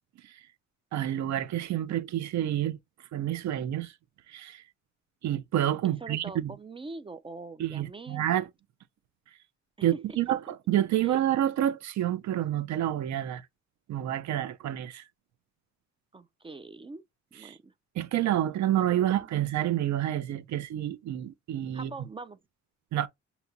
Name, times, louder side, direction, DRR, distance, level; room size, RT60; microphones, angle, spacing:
voice 1, 0.9-2.8 3.1-3.9 4.3-4.6 5.2-6.5 7.6-8.5 9.8-13.4 13.9-15.0 17.4-17.5 18.0-21.9 22.9-23.1, right 12 dB, 70° right, 0.6 m, -28 dB
voice 2, 5.8-8.3 9.8-10.2 11.0-11.2 16.1-17.0 17.3-17.7 18.8-19.3 21.7-22.4, right 3 dB, 20° right, 0.3 m, -43 dB
5.7 x 2.8 x 2.7 m
cardioid pair, 90°, 30 cm